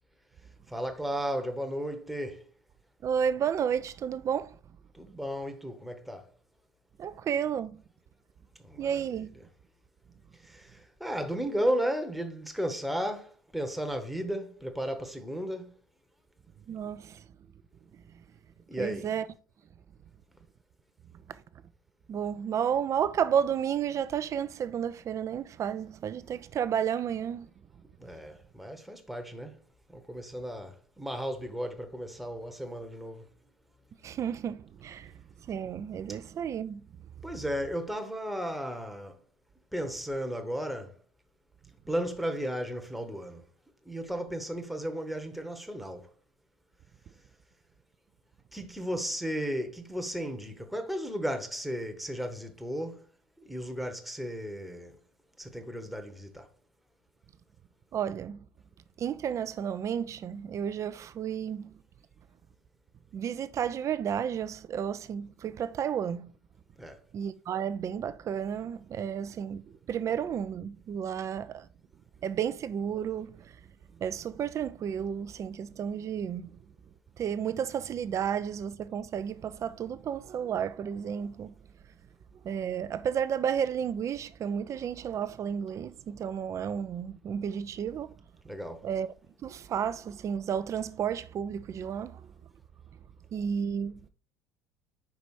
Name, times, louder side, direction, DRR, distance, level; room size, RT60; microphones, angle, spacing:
voice 1, 0.7-2.5 4.9-6.3 8.6-9.5 10.3-15.8 18.7-19.1 28.0-29.6 29.9-33.3 36.1-36.2 37.2-39.2 39.7-41.0 41.9-43.5 43.8-46.1 48.5-53.1 53.4-55.0 55.4-56.5 66.8-67.0 88.4-88.9, equal, ahead, 1.1 m, -34 dB
voice 2, 3.0-4.6 7.0-7.8 8.8-9.3 16.7-17.2 17.9-18.0 18.8-19.3 21.3-21.4 22.1-27.5 34.0-35.1 35.4-36.8 57.9-58.4 59.0-61.8 63.1-66.3 67.1-71.7 72.2-73.6 74.0-76.4 77.2-81.5 82.4-88.1 88.8-89.1 89.4-92.3 93.3-94.0, right 8 dB, 35° right, 0.5 m, -32 dB
5.0 x 4.7 x 4.3 m
figure-of-eight pair, 65°, 9 cm